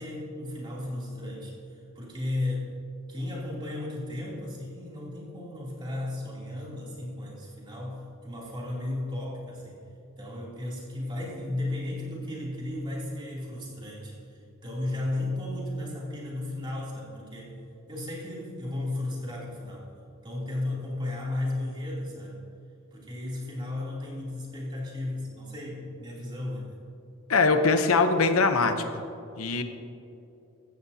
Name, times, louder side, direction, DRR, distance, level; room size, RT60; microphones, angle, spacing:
voice 1, 0.0-2.7 3.1-9.8 10.2-17.5 17.9-19.9 20.2-22.4 22.9-26.8, left 1 dB, 25° right, -5 dB, 2.9 m, -34 dB
voice 2, 27.3-29.0 29.4-29.6, left 4 dB, 80° left, 7 dB, 0.8 m, -22 dB
16.0 x 13.0 x 2.8 m, 2.7 s
head